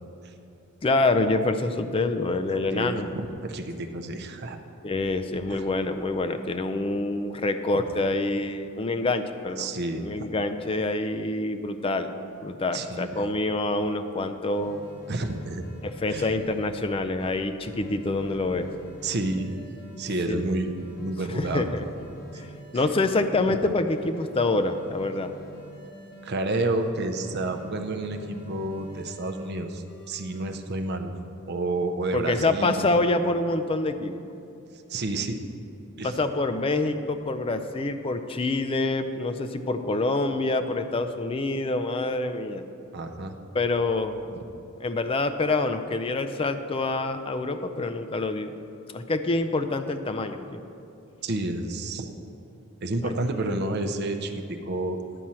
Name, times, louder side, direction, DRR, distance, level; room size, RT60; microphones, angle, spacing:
voice 1, 0.8-3.1 4.8-9.7 10.0-12.1 12.4-14.8 15.8-18.7 20.3-20.8 21.4-21.8 22.3-25.3 32.1-34.2 36.0-42.6 43.5-44.2 44.8-48.5 48.9-50.6 53.0-53.1, left 2 dB, 25° left, 8 dB, 0.4 m, -26 dB
voice 2, 2.7-4.6 5.5-5.6 9.6-10.3 12.7-13.1 15.1-15.6 16.1-16.3 19.0-19.6 20.0-21.6 22.7-22.8 26.2-31.1 31.5-32.9 34.9-35.4 36.0-36.1 42.9-43.3 44.3-44.4 51.2-52.2 52.8-55.0, right 2 dB, 50° right, 6 dB, 0.6 m, -30 dB
sound 1, 14.5-16.8 17.2-20.0 20.4-23.1 23.5-26.3 26.7-29.5 29.9-30.6, right 1 dB, 50° left, 1.1 m, -47 dB
11.0 x 4.3 x 7.5 m, 2.7 s
head